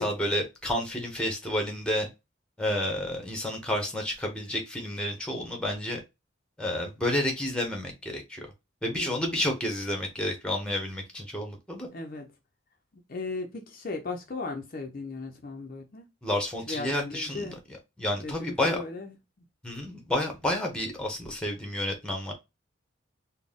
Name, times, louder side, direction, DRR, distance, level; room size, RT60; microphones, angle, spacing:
voice 1, 0.0-2.1 2.6-6.0 6.6-8.5 8.8-11.9 16.2-17.5 18.0-18.8 19.6-22.3, left 1 dB, 5° left, 1.0 m, -30 dB
voice 2, 8.9-9.4 11.9-12.3 13.1-16.1 16.7-17.6 18.2-19.5, left 3 dB, 45° left, 0.6 m, -37 dB
4.0 x 2.2 x 3.5 m
head